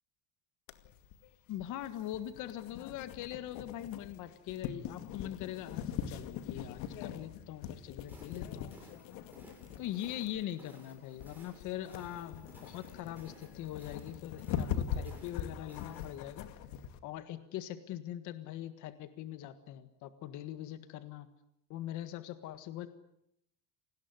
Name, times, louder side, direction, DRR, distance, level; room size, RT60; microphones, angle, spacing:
sound 1, 0.7-17.0, left 9 dB, 80° left, 2.3 m, -42 dB
voice 1, 1.5-8.7 9.8-16.5 17.0-21.3 21.7-22.9, left 12 dB, 55° left, 11 dB, 1.7 m, -42 dB
sound 2, 8.1-16.2, right 2 dB, 5° right, 7.4 m, -59 dB
28.5 x 19.5 x 9.7 m, 0.79 s
cardioid pair, 165°, 35 cm